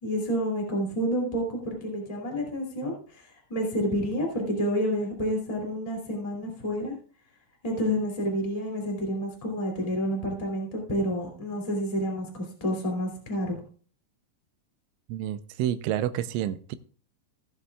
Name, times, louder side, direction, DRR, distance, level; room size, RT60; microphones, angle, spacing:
voice 1, 0.0-6.9 7.6-13.6, equal, 35° left, -1 dB, 0.5 m, -29 dB
voice 2, 15.1-16.8, right 11 dB, 85° right, 11 dB, 3.0 m, -29 dB
16.0 x 9.6 x 2.3 m, 0.43 s
omnidirectional pair, 5.6 m